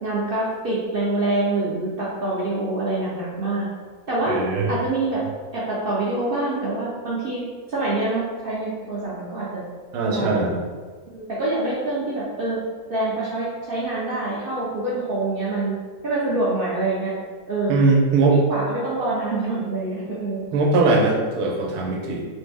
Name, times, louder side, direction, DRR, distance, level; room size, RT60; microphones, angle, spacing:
voice 1, 0.0-3.7 4.1-4.4 4.7-5.2 5.5-7.4 7.7-9.6 10.1-10.5 11.1-12.6 12.9-15.8 16.0-17.1 17.5-17.8 18.5-20.5, right 2 dB, 65° right, -7 dB, 0.5 m, -25 dB
voice 2, 4.3-4.7 9.9-10.6 17.7-18.4 20.5-22.2, right 3 dB, 90° right, -1 dB, 1.2 m, -20 dB
3.3 x 2.1 x 3.3 m, 1.5 s
omnidirectional pair, 1.6 m